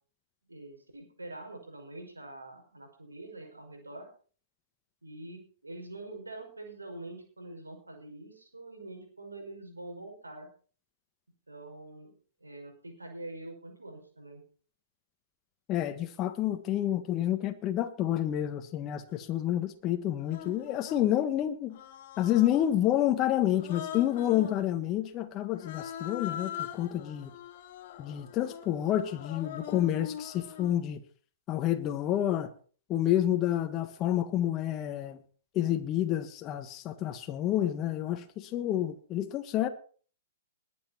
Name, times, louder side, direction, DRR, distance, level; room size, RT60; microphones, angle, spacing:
voice 1, 0.5-4.1 5.0-10.5 11.5-12.1 12.4-14.4, right 2 dB, 85° right, 5.2 m, -45 dB
voice 2, 15.7-21.8 22.2-27.3 28.0-31.0 31.5-32.5 32.9-35.2 35.5-39.7, left 12 dB, 30° left, 1.4 m, -29 dB
Human voice, 19.1-19.2 20.2-21.1 21.7-22.8 23.5-24.6 25.5-30.8, left 10 dB, 50° left, 2.2 m, -42 dB
21.0 x 8.6 x 4.4 m
figure-of-eight pair, 115°, 0 cm